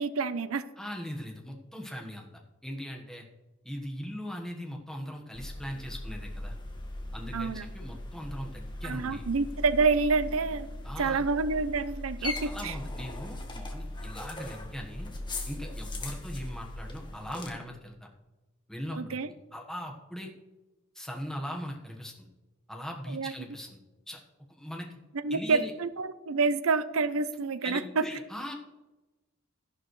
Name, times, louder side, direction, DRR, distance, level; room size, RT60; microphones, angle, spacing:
voice 1, 0.0-0.7 7.3-7.6 8.8-10.7 11.0-12.8 18.9-19.3 23.1-23.3 25.2-28.0, right 4 dB, 75° right, 13 dB, 0.6 m, -28 dB
voice 2, 0.8-2.3 2.6-3.3 3.6-6.5 7.1-9.2 10.8-11.2 12.2-15.1 15.5-18.1 18.7-20.3 20.9-22.3 22.7-23.8 24.1-24.2 24.5-25.0 25.3-25.7 27.6-28.5, equal, ahead, 0 dB, 1.3 m, -40 dB
sound 1, 5.3-17.5, left 1 dB, 20° left, 1.4 m, -39 dB
13.0 x 11.0 x 3.2 m, 1.1 s
head